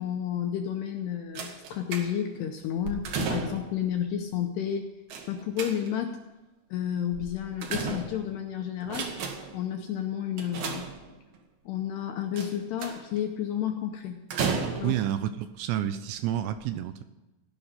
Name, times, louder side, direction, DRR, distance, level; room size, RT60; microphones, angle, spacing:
voice 1, 0.0-4.9 5.3-6.2 6.7-9.1 9.5-10.8 11.7-14.2 14.8-15.0, left 9 dB, 80° left, 4 dB, 2.5 m, -31 dB
sound 1, 1.4-2.4 2.8-3.8 5.1-6.1 7.1-8.4 8.8-9.6 10.4-11.4 12.4-13.2 14.3-15.1 16.0-16.1 16.4-16.5, right 5 dB, 60° right, 2.5 m, -34 dB
voice 2, 14.8-17.0, right 11 dB, 80° right, 10 dB, 2.7 m, -29 dB
16.0 x 6.0 x 9.6 m, 1.1 s
omnidirectional pair, 5.6 m